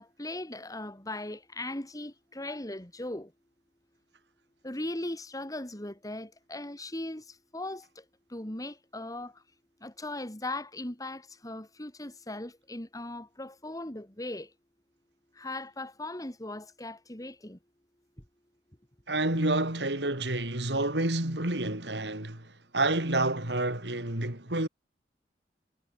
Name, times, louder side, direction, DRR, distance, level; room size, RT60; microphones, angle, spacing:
voice 1, 0.0-3.3 4.6-7.2 7.5-8.0 8.3-9.3 9.8-14.5 15.4-17.6, left 1 dB, 20° left, 2.6 m, -38 dB
voice 2, 19.1-22.5 22.7-24.7, right 2 dB, 80° right, 4.5 m, -29 dB
head